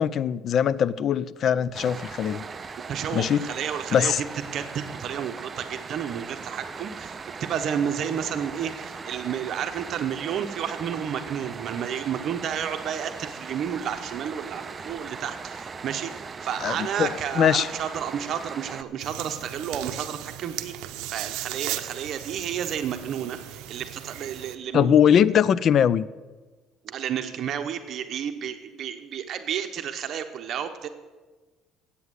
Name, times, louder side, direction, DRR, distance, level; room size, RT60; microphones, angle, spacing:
voice 1, 0.0-2.4 3.1-3.5 3.9-4.2 16.6-17.7 24.7-26.1, left 8 dB, 45° left, 19 dB, 0.4 m, -21 dB
sound 1, 1.7-18.8, right 5 dB, 25° right, 0.5 m, -39 dB
voice 2, 2.9-4.1 4.5-20.7 21.1-25.2 26.8-30.9, right 8 dB, 55° right, 7 dB, 0.8 m, -31 dB
sound 2, 19.0-24.6, right 13 dB, 85° right, 0.6 m, -36 dB
9.5 x 8.4 x 8.1 m, 1.3 s
cardioid pair, 130°, 0 cm